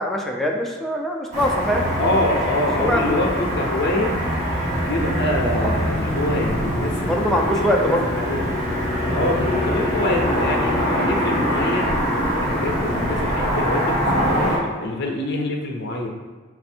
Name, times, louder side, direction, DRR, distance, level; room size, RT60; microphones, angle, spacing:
voice 1, 0.0-1.8 2.9-3.2 7.1-8.1, equal, ahead, -1 dB, 0.5 m, -22 dB
Car passing by / Traffic noise roadway noise, 1.3-14.6, equal, 40° right, 1.3 m, -23 dB
voice 2, 2.0-4.2 4.7-8.4 9.1-16.1, left 1 dB, 55° left, 1 dB, 0.6 m, -25 dB
4.3 x 2.5 x 4.3 m, 1.4 s
head